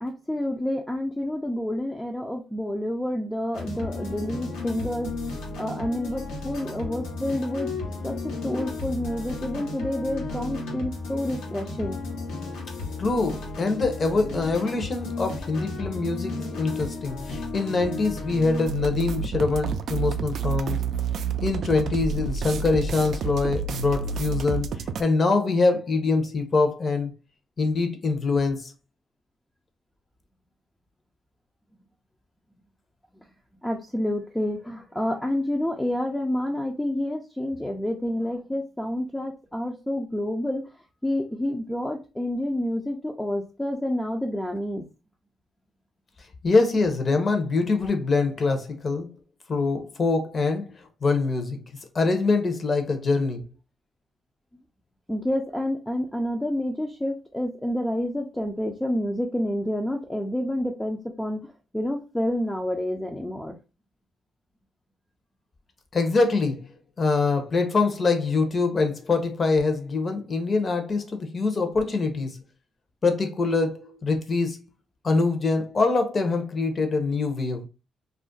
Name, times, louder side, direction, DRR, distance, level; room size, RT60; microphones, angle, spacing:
voice 1, 0.0-7.7 8.0-12.0 33.6-40.6 41.0-44.9 55.1-61.4 61.7-63.6, left 1 dB, 10° left, 0.4 m, -29 dB
sound 1, 3.5-18.7, left 3 dB, 85° left, 0.9 m, -34 dB
voice 2, 13.0-20.8 21.4-24.7 25.0-27.1 27.6-28.7 46.4-49.1 49.5-50.7 51.0-51.6 51.9-53.4 65.9-72.4 73.0-74.6 75.0-77.7, left 3 dB, 40° left, 0.7 m, -24 dB
sound 2, 18.7-25.0, right 5 dB, 65° right, 0.3 m, -29 dB
2.4 x 2.0 x 3.7 m
cardioid pair, 90°, 0 cm